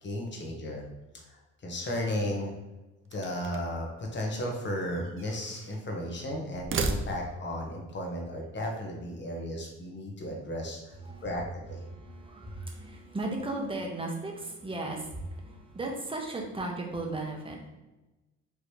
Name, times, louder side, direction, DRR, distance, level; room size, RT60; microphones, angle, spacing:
voice 1, 0.0-0.8 1.3-2.5 3.1-10.9 11.2-11.8, left 1 dB, 40° left, 0 dB, 1.3 m, -34 dB
sound 1, 3.0-3.9 4.8-5.8 6.5-7.5, right 4 dB, 45° right, 0.6 m, -35 dB
voice 2, 11.0-17.7, right 2 dB, 20° right, 0 dB, 1.1 m, -36 dB
4.8 x 3.2 x 3.3 m, 1.1 s
cardioid pair, 90°, 30 cm